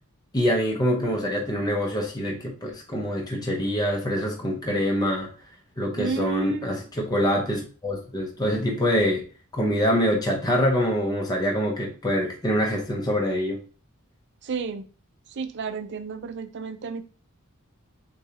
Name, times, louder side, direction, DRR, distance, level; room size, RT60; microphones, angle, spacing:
voice 1, 0.3-5.3 5.8-9.2 9.5-13.6, equal, 20° left, 0.7 m, -25 dB
voice 2, 6.0-6.9 14.4-14.9 15.3-17.0, right 5 dB, 50° right, 0.4 m, -32 dB
6.5 x 2.3 x 2.9 m
head